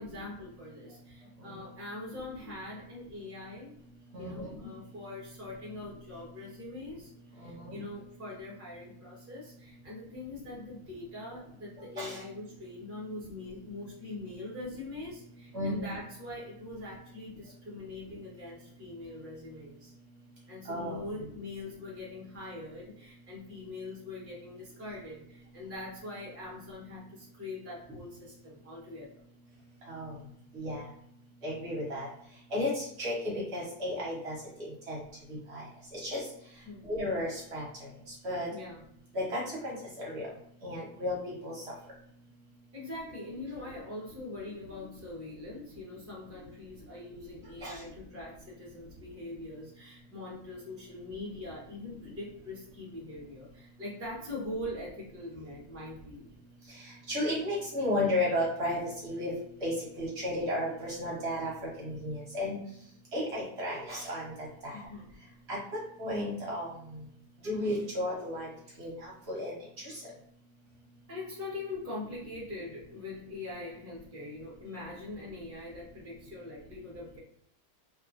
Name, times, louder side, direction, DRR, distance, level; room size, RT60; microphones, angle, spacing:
voice 1, 0.0-3.7 4.2-7.1 7.4-19.9 20.5-29.2 36.6-36.9 38.5-38.8 42.7-56.3 64.7-65.1 71.1-77.2, left 2 dB, 15° right, -5 dB, 0.5 m, -43 dB
voice 2, 4.1-4.5 7.4-7.8 12.0-12.2 15.5-15.9 20.7-21.0 29.9-30.1 30.5-30.8 31.4-32.1 32.5-34.3 34.9-35.0 35.5-35.6 35.9-36.2 36.9-37.6 38.2-38.5 39.1-40.3 40.6-41.2 41.4-41.5 47.6-47.7 57.1-59.3 59.6-61.5 61.8-62.6 63.1-64.3 64.6-64.7 65.5-65.6 66.0-66.7 67.4-68.5 68.8-69.5 69.8-69.9, left 1 dB, 50° right, -4 dB, 1.0 m, -33 dB
2.9 x 2.4 x 2.4 m, 0.68 s
omnidirectional pair, 1.7 m